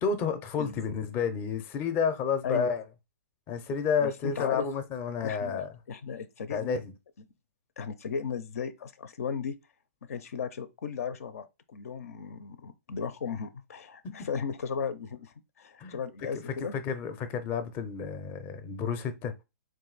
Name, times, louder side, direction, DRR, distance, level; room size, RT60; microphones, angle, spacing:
voice 1, 0.0-2.8 3.5-5.7 6.5-6.9 14.0-14.3 15.8-16.0 16.3-19.3, left 6 dB, 25° left, 0.6 m, -31 dB
voice 2, 4.0-4.7 5.2-6.8 7.8-9.6 10.1-16.7, left 6 dB, 65° left, 0.6 m, -36 dB
3.5 x 2.6 x 3.9 m
hypercardioid pair, 140°, 8 cm